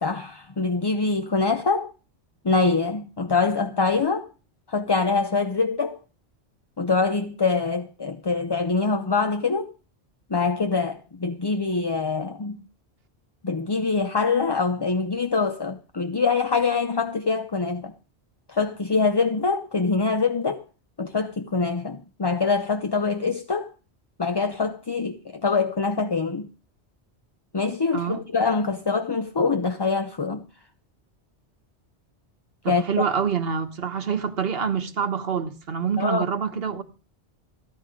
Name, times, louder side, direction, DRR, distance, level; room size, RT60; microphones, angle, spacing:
voice 1, 0.0-1.9 2.4-4.3 4.7-6.0 6.8-9.7 10.3-12.6 13.4-17.9 18.5-20.6 21.0-23.7 24.2-26.5 27.5-30.4 32.7-32.8 36.0-36.2, left 4 dB, 30° left, 0.6 m, -24 dB
voice 2, 27.9-28.2 32.6-36.8, right 7 dB, 60° right, 1.4 m, -26 dB
15.5 x 11.0 x 5.2 m
omnidirectional pair, 1.1 m